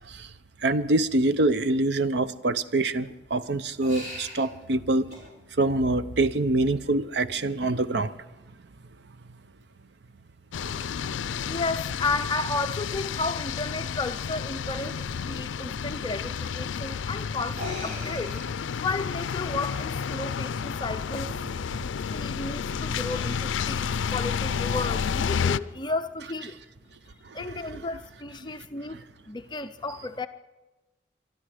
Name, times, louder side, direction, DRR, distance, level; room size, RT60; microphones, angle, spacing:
voice 1, 0.6-5.1 5.6-8.1 27.4-27.8, right 2 dB, 65° right, 0.6 m, -25 dB
sound 1, 3.8-4.5 5.1-5.2 7.3-7.5 10.6-10.8 12.3-12.4 12.8-12.9 13.2-13.3 16.4-16.5 17.4-19.8, left 1 dB, 45° right, 5.6 m, -41 dB
sound 2, 10.5-25.6, left 6 dB, 85° left, 0.4 m, -31 dB
voice 2, 11.5-18.3 18.8-21.4 22.1-26.6 27.3-30.3, left 3 dB, 25° left, 0.5 m, -33 dB
23.0 x 12.5 x 5.0 m
head